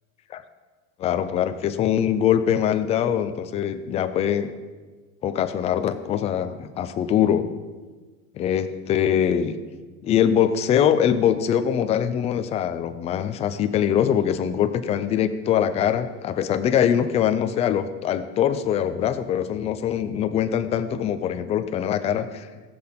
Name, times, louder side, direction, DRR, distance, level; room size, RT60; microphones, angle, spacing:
voice 1, 1.0-4.5 5.2-7.5 8.3-9.6 10.0-22.5, left 9 dB, 15° left, 10 dB, 0.4 m, -23 dB
16.0 x 7.8 x 5.8 m, 1.3 s
supercardioid pair, 155°, 41 cm